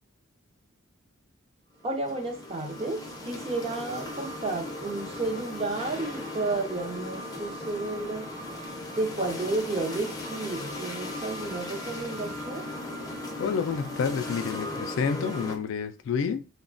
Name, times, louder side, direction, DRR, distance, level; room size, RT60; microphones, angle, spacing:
sound 1, 1.8-15.6, left 1 dB, 20° left, 0.6 m, -37 dB
voice 1, 1.8-3.0 3.2-8.3 8.9-12.6, right 2 dB, 30° right, 0.5 m, -32 dB
voice 2, 13.4-16.4, left 6 dB, 65° left, 0.3 m, -29 dB
3.0 x 2.1 x 2.4 m
head